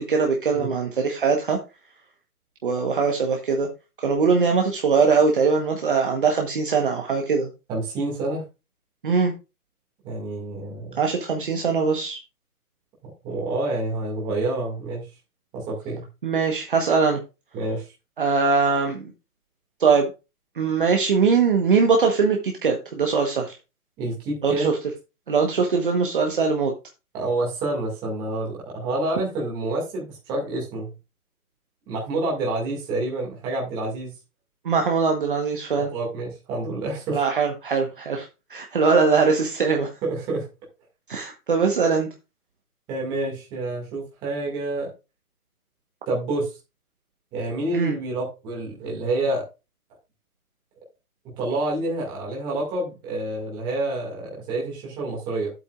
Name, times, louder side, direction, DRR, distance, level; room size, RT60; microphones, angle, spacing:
voice 1, 0.0-1.6 2.6-3.7 4.0-7.5 9.0-9.3 11.0-12.2 16.2-17.2 18.2-19.0 19.8-20.1 20.5-23.6 24.4-24.8 25.3-26.7 34.6-35.9 37.1-39.9 41.1-42.1 47.7-47.9, right 5 dB, 35° right, 2 dB, 1.1 m, -21 dB
voice 2, 7.7-8.4 10.0-11.0 13.2-15.1 15.5-16.1 17.5-17.8 24.0-24.7 27.1-30.9 31.9-34.2 35.7-37.2 40.0-40.5 42.9-44.9 46.1-46.5 47.3-49.4 51.4-55.5, right 2 dB, 10° right, -2 dB, 2.0 m, -28 dB
11.5 x 8.0 x 2.4 m, 0.28 s
hypercardioid pair, 175°, 45 cm